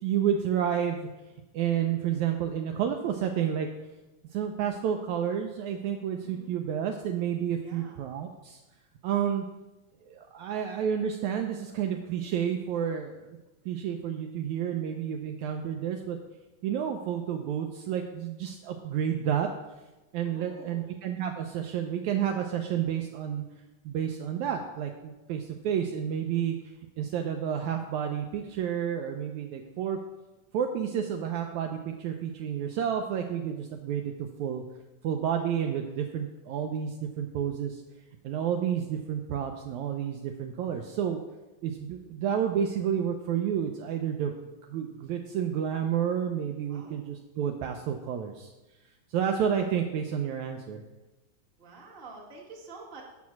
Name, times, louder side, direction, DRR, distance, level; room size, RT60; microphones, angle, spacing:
voice 1, 0.0-1.1 1.5-3.7 4.3-8.6 9.0-9.4 10.0-13.4 13.6-16.2 16.6-19.5 20.1-23.4 23.8-26.6 27.0-30.0 30.5-34.6 35.0-37.8 38.2-41.2 41.6-48.5 49.1-50.8, right 8 dB, 90° right, 4 dB, 1.6 m, -30 dB
voice 2, 6.2-6.5 7.6-8.0 20.2-21.0 46.7-47.0 51.6-53.0, right 3 dB, 30° right, -3 dB, 1.1 m, -48 dB
9.5 x 6.3 x 5.9 m, 1.1 s
omnidirectional pair, 4.1 m